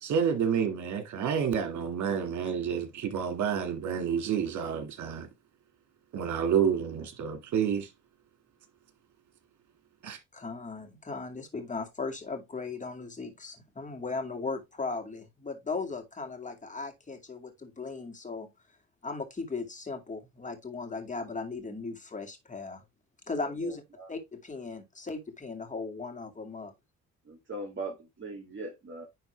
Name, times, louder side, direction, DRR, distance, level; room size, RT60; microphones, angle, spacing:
voice 1, 0.0-5.3 6.1-7.9 10.0-10.2, right 7 dB, 70° right, 2.1 m, -29 dB
voice 2, 10.3-18.5 19.0-22.8 23.3-23.8 24.1-26.7, left 4 dB, 25° left, 2.3 m, -37 dB
voice 3, 23.6-24.1 27.2-29.0, right 2 dB, 40° right, 2.5 m, -40 dB
10.5 x 3.6 x 3.3 m
cardioid pair, 90°, 30 cm